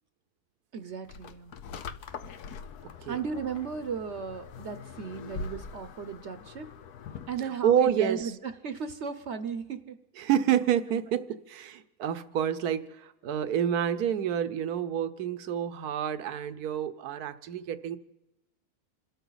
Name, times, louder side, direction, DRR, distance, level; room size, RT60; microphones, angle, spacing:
voice 1, 0.7-1.5 3.1-6.7 7.3-10.0, right 6 dB, 55° right, 11 dB, 1.0 m, -35 dB
sound 1, 1.1-7.5, left 5 dB, 90° left, 1.4 m, -43 dB
voice 2, 7.6-8.2 10.2-18.0, right 9 dB, 85° right, 12 dB, 1.4 m, -28 dB
27.5 x 13.0 x 4.0 m, 0.96 s
omnidirectional pair, 1.6 m